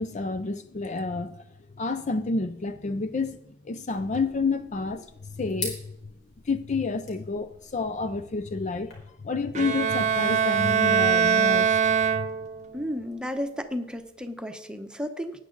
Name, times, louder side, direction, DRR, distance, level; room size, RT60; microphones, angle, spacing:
voice 1, 0.0-1.4 1.8-3.4 3.6-6.1 6.4-8.9 9.2-12.3, left 3 dB, 40° left, 0.5 m, -29 dB
sound 1, 3.9-8.9, left 3 dB, 60° left, 4.7 m, -43 dB
Bowed string instrument, 9.6-12.7, right 7 dB, 40° right, 0.7 m, -23 dB
voice 2, 12.7-15.4, equal, 5° right, 0.9 m, -33 dB
19.5 x 9.6 x 3.9 m
head